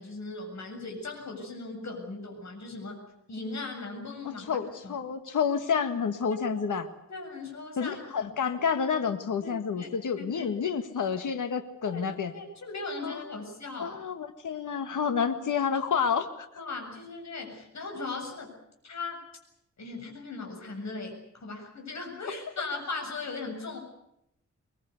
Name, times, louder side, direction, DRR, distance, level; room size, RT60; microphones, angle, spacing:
voice 1, 0.0-3.0 3.3-5.0 6.3-6.4 7.1-8.3 9.4-9.9 10.2-10.7 11.8-12.0 12.3-14.0 16.6-18.5 18.8-19.2 19.8-23.8, left 3 dB, 65° left, 2 dB, 7.4 m, -38 dB
voice 2, 4.5-6.9 7.8-12.3 13.0-13.2 13.8-16.5, left 6 dB, 85° left, 8 dB, 1.8 m, -29 dB
22.5 x 22.5 x 8.2 m, 0.77 s
wide cardioid pair, 110°, 30 cm